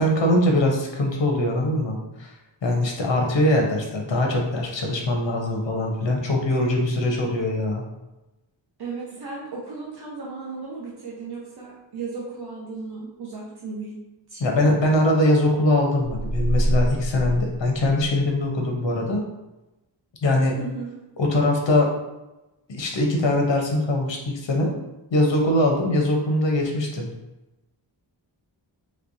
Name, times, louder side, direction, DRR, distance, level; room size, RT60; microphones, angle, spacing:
voice 1, 0.0-2.3 2.6-7.8 14.4-19.2 20.2-20.6 21.2-21.9 22.7-24.7 25.1-27.1, left 1 dB, 70° left, 1 dB, 0.8 m, -22 dB
voice 2, 8.8-13.9 14.3-14.4 20.5-20.9, right 4 dB, 55° right, -4 dB, 0.7 m, -35 dB
sound 1, 16.0-18.4, right 1 dB, 40° left, 0.9 m, -26 dB
3.2 x 3.2 x 2.6 m, 1.0 s
wide cardioid pair, 105°, 46 cm